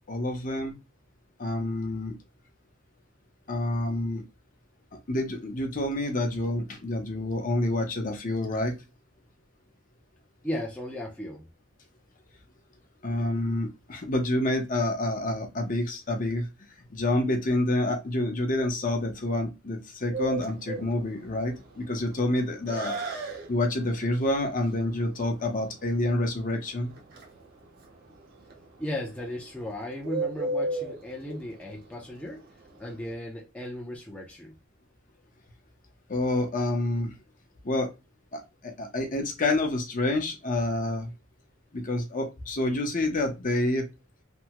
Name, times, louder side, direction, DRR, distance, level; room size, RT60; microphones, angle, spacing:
voice 1, 0.1-0.7 1.4-2.1 3.5-4.2 5.1-8.7 13.0-16.5 16.9-23.0 23.5-26.9 36.1-37.1 37.6-37.9 38.3-41.1 41.7-43.9, left 1 dB, 40° left, 0.8 m, -28 dB
voice 2, 10.4-11.4 28.8-32.4 32.8-34.5, left 1 dB, 5° left, 0.6 m, -36 dB
Bird, 20.1-33.1, right 2 dB, 50° right, 0.9 m, -36 dB
3.4 x 2.2 x 2.8 m
head